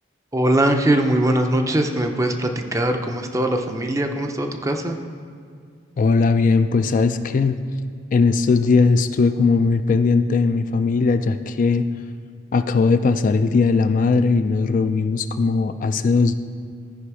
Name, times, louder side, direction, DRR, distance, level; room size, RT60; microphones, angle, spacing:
voice 1, 0.3-5.0, right 1 dB, 15° right, 5 dB, 0.5 m, -21 dB
voice 2, 6.0-7.6 8.1-11.9 12.5-16.4, left 4 dB, 45° left, 9 dB, 0.3 m, -19 dB
13.0 x 5.1 x 4.8 m, 2.2 s
head